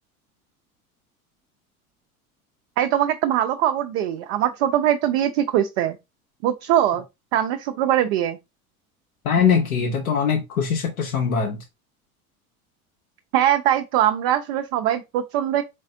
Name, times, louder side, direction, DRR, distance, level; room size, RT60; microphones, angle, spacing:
voice 1, 2.8-6.0 6.4-7.0 7.3-8.4 13.3-15.6, right 11 dB, 50° right, 0.5 m, -21 dB
voice 2, 9.2-11.6, left 6 dB, 75° left, 0.8 m, -22 dB
4.0 x 3.4 x 2.6 m
figure-of-eight pair, 70°, 44 cm